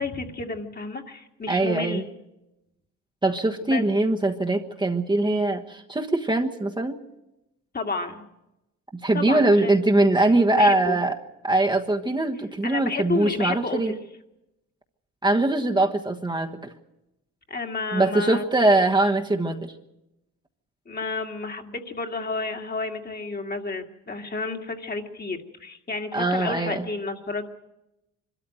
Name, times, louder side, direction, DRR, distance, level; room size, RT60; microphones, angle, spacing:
voice 1, 0.0-2.1 3.6-3.8 7.7-8.2 9.1-9.8 10.5-11.0 12.6-13.9 17.5-18.4 20.9-27.5, left 3 dB, 30° left, 4 dB, 2.1 m, -31 dB
voice 2, 1.5-2.0 3.2-6.9 8.9-11.2 11.4-13.9 15.2-16.5 17.9-19.7 26.1-26.8, right 2 dB, 15° right, 2 dB, 1.3 m, -22 dB
24.0 x 13.5 x 9.1 m, 0.91 s
cardioid pair, 90°, 30 cm